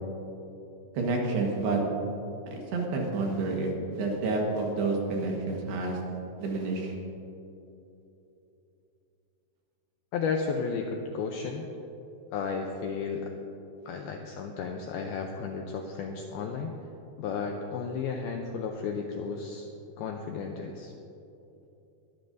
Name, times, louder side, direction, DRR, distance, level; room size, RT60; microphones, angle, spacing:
voice 1, 1.0-1.8 2.5-6.0 6.4-7.0, right 3 dB, 70° right, 0 dB, 3.4 m, -29 dB
voice 2, 10.1-11.7 12.3-13.3 13.9-16.8 17.2-19.7 20.0-20.9, left 5 dB, 85° left, 2 dB, 2.2 m, -33 dB
21.5 x 13.0 x 2.7 m, 2.9 s
omnidirectional pair, 5.2 m